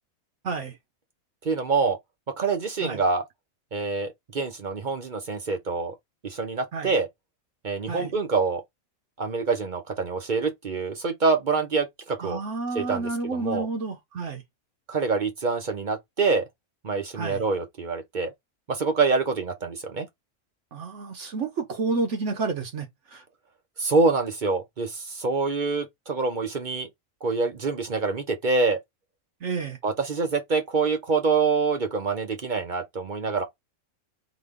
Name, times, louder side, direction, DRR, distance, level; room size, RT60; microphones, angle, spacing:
voice 1, 0.4-0.8 2.8-3.0 6.7-6.9 7.9-8.1 12.2-14.4 17.1-17.4 20.7-23.2 29.4-29.8, right 4 dB, 60° right, 1.1 m, -30 dB
voice 2, 1.4-2.0 2.4-3.2 3.7-6.0 6.2-7.1 7.6-8.6 9.2-12.4 12.7-13.7 14.9-16.5 16.8-18.3 18.7-20.1 23.8-26.9 27.2-28.8 29.8-33.4, right 4 dB, 40° right, 0.7 m, -26 dB
4.0 x 3.0 x 3.5 m
omnidirectional pair, 1.5 m